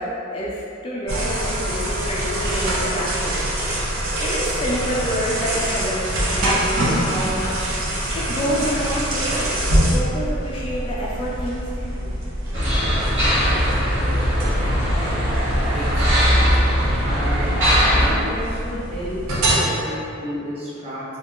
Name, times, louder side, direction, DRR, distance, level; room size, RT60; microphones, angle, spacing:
voice 1, 0.0-3.5 4.2-9.5 9.8-12.2 13.4-13.5, equal, 25° left, -6 dB, 0.4 m, -28 dB
sound 1, 1.1-19.6, right 1 dB, 85° right, 0.6 m, -25 dB
sound 2, 12.5-18.1, equal, 60° right, 0.9 m, -19 dB
voice 2, 15.7-16.4 17.1-17.6 17.9-21.0, equal, 30° right, -7 dB, 0.6 m, -31 dB
2.8 x 2.4 x 3.6 m, 2.6 s
head